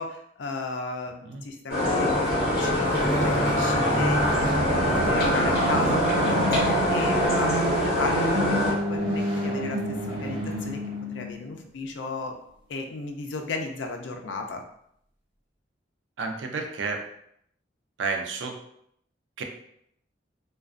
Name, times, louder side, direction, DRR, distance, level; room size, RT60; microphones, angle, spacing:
voice 1, 0.0-10.8 11.1-12.3 12.7-14.6, left 3 dB, 80° left, 4 dB, 0.4 m, -34 dB
sound 1, 1.7-8.7, left 1 dB, 55° left, 1.0 m, -24 dB
sound 2, 2.3-11.5, right 1 dB, 15° right, 1.3 m, -28 dB
sound 3, 6.5-10.6, left 2 dB, 35° right, 0.8 m, -41 dB
voice 2, 16.2-17.0 18.0-18.6 19.4-19.5, right 4 dB, 90° right, 3 dB, 0.4 m, -30 dB
2.4 x 2.2 x 2.4 m, 0.71 s
head